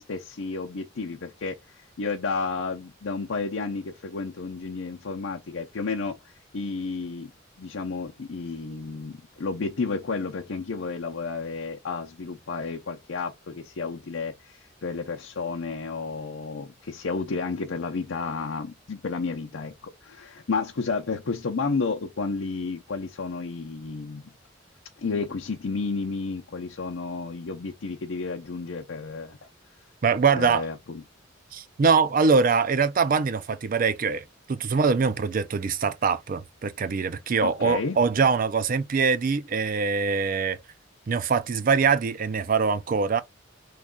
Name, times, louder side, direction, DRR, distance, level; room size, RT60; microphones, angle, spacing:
voice 1, 0.0-1.6 2.0-6.2 6.5-7.3 7.6-24.3 25.0-29.4 30.4-30.7 37.4-38.0, left 4 dB, 80° left, 0.6 m, -31 dB
voice 2, 30.0-30.7 31.5-40.6 41.1-43.2, right 5 dB, 45° right, 0.4 m, -23 dB
3.1 x 2.3 x 3.7 m
head